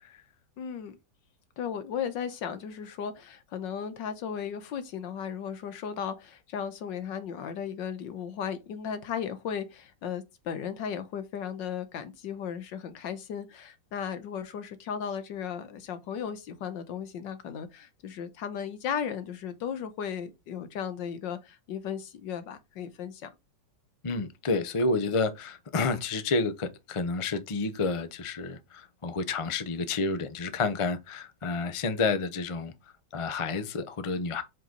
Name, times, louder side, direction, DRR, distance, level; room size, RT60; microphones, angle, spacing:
voice 1, 0.6-1.0 1.6-23.3, left 7 dB, 85° left, 1.6 m, -36 dB
voice 2, 24.0-32.7 33.1-34.4, left 3 dB, 50° left, 0.3 m, -30 dB
7.6 x 3.9 x 3.9 m
omnidirectional pair, 1.9 m